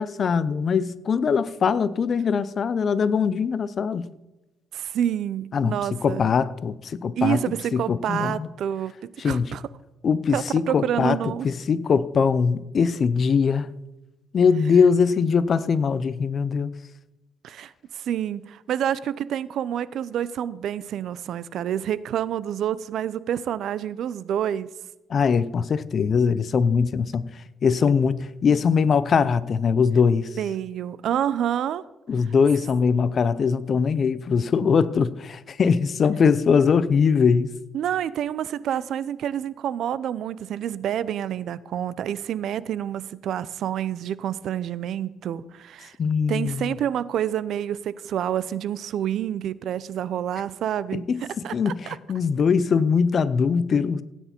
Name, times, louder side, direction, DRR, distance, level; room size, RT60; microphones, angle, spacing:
voice 1, 0.0-4.1 5.5-7.4 7.7-8.5 9.2-9.6 10.0-13.7 14.3-16.7 25.1-27.3 27.6-30.3 32.1-37.5 46.0-46.7 50.9-51.2 51.5-54.0, left 6 dB, 50° left, 0.7 m, -22 dB
voice 2, 4.7-6.2 7.2-8.9 9.2-9.6 10.3-11.5 17.4-24.7 30.4-31.8 37.7-45.9 46.3-51.1 51.4-52.0, right 10 dB, 75° right, 0.6 m, -28 dB
16.5 x 9.2 x 4.4 m
cardioid pair, 90°, 0 cm